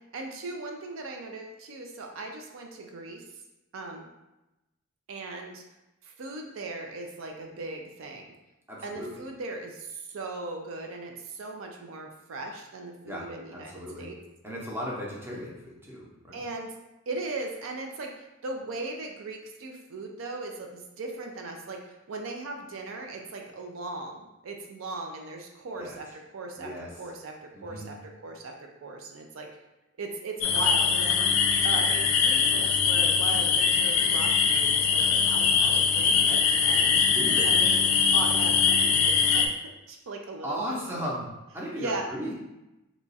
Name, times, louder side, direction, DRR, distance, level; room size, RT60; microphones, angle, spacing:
voice 1, 0.1-3.2 3.7-4.1 5.1-5.6 6.0-8.3 8.8-14.2 16.3-16.7 17.1-29.5 30.0-31.2 31.6-37.1 37.4-37.8 38.1-39.6 39.9-40.8 41.7-42.1, right 2 dB, 75° right, 2 dB, 0.4 m, -38 dB
voice 2, 8.7-9.2 13.0-14.1 14.4-16.4 25.8-25.9 26.6-26.9 27.5-27.9 37.1-37.5 40.4-41.3 41.5-42.3, equal, 10° right, -4 dB, 0.6 m, -36 dB
sound 1, 30.4-39.5, left 6 dB, 90° left, 0.4 m, -22 dB
2.9 x 2.3 x 4.0 m, 0.96 s
head